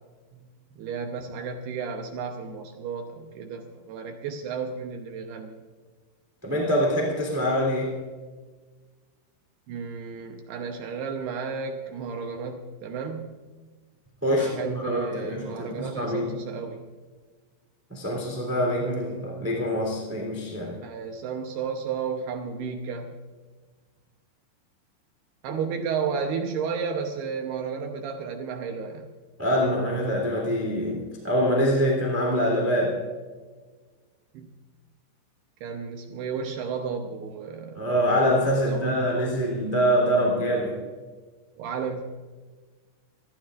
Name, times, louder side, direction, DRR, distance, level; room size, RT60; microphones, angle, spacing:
voice 1, 0.8-5.6 9.7-13.4 14.3-16.9 20.8-23.1 25.4-29.1 34.3-34.5 35.6-37.8 38.6-39.4 41.6-42.0, right 5 dB, 75° right, 3 dB, 2.7 m, -33 dB
voice 2, 6.4-8.0 14.2-16.3 17.9-20.8 29.4-33.0 37.8-40.8, equal, 5° right, -1 dB, 2.1 m, -25 dB
27.5 x 13.0 x 2.5 m, 1.4 s
omnidirectional pair, 5.3 m